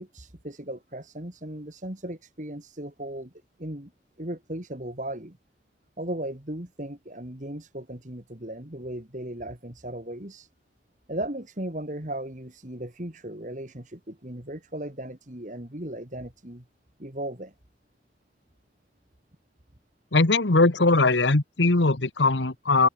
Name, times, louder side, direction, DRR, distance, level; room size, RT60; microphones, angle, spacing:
voice 1, 0.0-3.3 3.6-3.9 4.2-5.4 6.0-10.5 11.1-16.6 17.0-17.5, right 1 dB, 40° right, 2.8 m, -36 dB
voice 2, 20.1-22.9, left 3 dB, 75° left, 1.4 m, -20 dB
open air
head